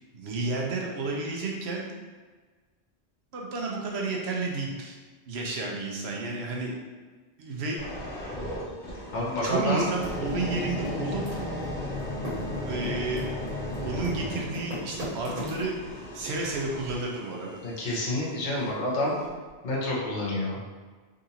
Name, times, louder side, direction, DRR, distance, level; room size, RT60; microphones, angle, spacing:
voice 1, 0.1-1.8 3.3-5.0 5.3-6.7 7.4-7.8 8.2-8.5 9.4-11.4 12.6-13.3 13.8-17.6 17.9-18.0, right 3 dB, 70° right, -1 dB, 0.9 m, -32 dB
sound 1, 7.8-18.7 19.3-19.5, left 1 dB, 75° left, 1.6 m, -36 dB
voice 2, 9.1-9.9 17.6-19.2 19.6-20.6, left 1 dB, 45° left, -5 dB, 1.0 m, -28 dB
Typing, 10.0-11.7 11.9-16.0, left 1 dB, 45° right, 1.2 m, -37 dB
3.7 x 2.5 x 2.8 m, 1.4 s
omnidirectional pair, 1.1 m